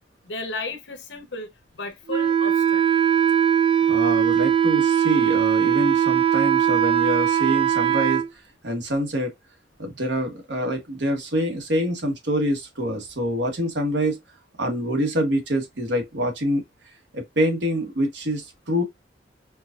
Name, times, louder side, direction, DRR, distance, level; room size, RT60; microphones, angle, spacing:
voice 1, 0.2-2.9, left 2 dB, 80° left, 0.9 m, -34 dB
Wind instrument woodwind instrument, 2.1-8.3, right 9 dB, 25° right, 0.4 m, -20 dB
voice 2, 3.9-8.2 8.6-9.3 9.8-14.2 14.6-16.6 17.1-18.8, equal, 70° right, 1.2 m, -25 dB
4.6 x 2.4 x 2.4 m
head